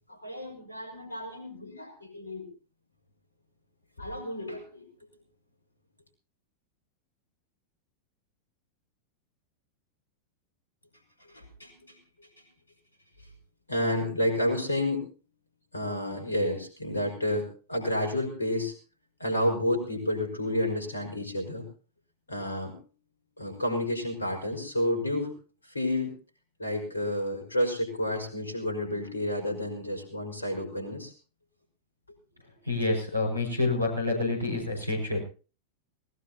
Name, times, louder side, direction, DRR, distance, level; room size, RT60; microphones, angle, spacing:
voice 1, 0.1-2.5 4.0-4.9 11.3-12.0 13.7-15.0 15.7-18.7 19.2-21.7 22.3-22.8 23.4-25.3 25.6-26.1 26.6-31.1, left 1 dB, 80° left, 3 dB, 5.3 m, -30 dB
voice 2, 32.6-35.2, left 2 dB, 85° right, 3 dB, 5.8 m, -28 dB
19.5 x 19.0 x 2.9 m, 0.37 s
figure-of-eight pair, 90°, 0 cm